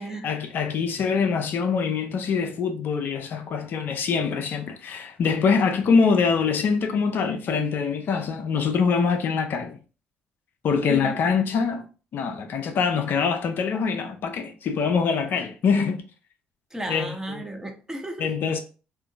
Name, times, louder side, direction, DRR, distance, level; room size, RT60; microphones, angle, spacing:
voice 1, 0.2-9.8 10.6-11.9 12.1-16.0 16.9-17.4 18.2-18.6, left 5 dB, 55° left, 0.4 m, -24 dB
voice 2, 16.7-18.3, right 1 dB, 15° right, 0.8 m, -33 dB
3.6 x 2.5 x 2.4 m
hypercardioid pair, 50°, 4 cm